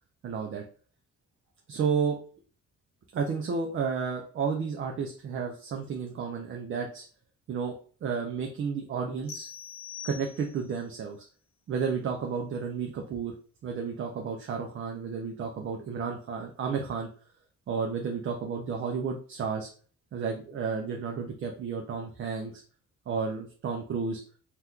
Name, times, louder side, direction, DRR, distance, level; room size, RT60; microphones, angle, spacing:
voice 1, 0.2-0.6 1.7-2.2 3.1-7.0 7.5-7.7 8.0-9.5 10.0-11.2 11.7-13.3 13.6-17.1 17.7-19.7 20.1-22.6 23.1-24.2, right 5 dB, 45° right, 2 dB, 0.5 m, -32 dB
sound 1, 9.3-10.8, left 7 dB, 70° left, 1.1 m, -43 dB
2.8 x 2.3 x 3.5 m, 0.42 s
cardioid pair, 130°, 29 cm